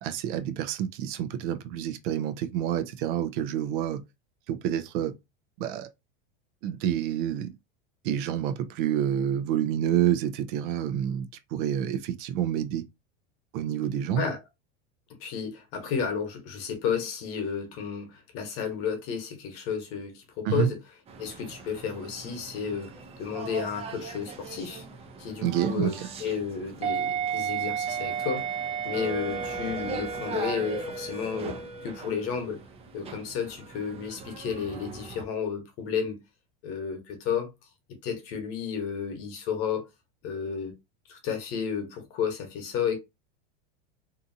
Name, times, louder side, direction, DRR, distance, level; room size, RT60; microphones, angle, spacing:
voice 1, 0.0-4.0 4.5-5.1 5.6-5.9 6.6-7.5 8.0-12.8 13.5-14.2 20.4-20.7 25.4-26.1, right 10 dB, 60° right, 0.6 m, -28 dB
voice 2, 15.2-20.8 21.2-22.9 23.2-24.8 25.2-28.5 28.8-31.6 31.8-32.6 32.9-36.2 36.6-37.5 38.0-39.8 40.2-40.7 41.1-43.0, left 7 dB, 50° left, 1.1 m, -32 dB
sound 1, 21.1-35.2, right 6 dB, 20° right, 0.5 m, -35 dB
2.8 x 2.5 x 2.7 m
supercardioid pair, 130°, 29 cm